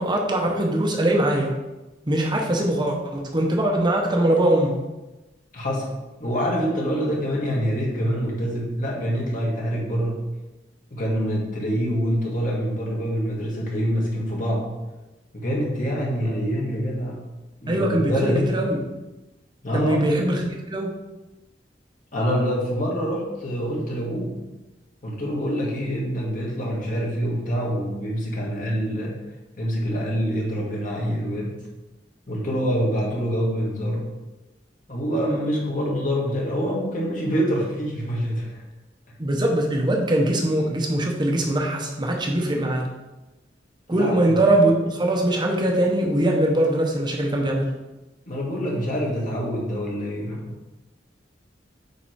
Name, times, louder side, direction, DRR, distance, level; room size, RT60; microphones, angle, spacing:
voice 1, 0.0-1.6 2.1-4.8 17.7-18.8 19.7-20.4 20.7-20.9 39.2-42.9 43.9-47.7, right 1 dB, 25° right, 1 dB, 0.8 m, -22 dB
voice 2, 5.5-5.9 6.2-10.2 10.9-14.7 15.3-17.2 17.6-18.6 19.6-20.1 22.1-24.4 25.0-29.2 29.6-31.6 32.3-34.1 34.9-38.6 44.0-44.4 48.3-50.7, equal, 45° left, -3 dB, 2.0 m, -25 dB
8.4 x 3.7 x 4.7 m, 1.1 s
head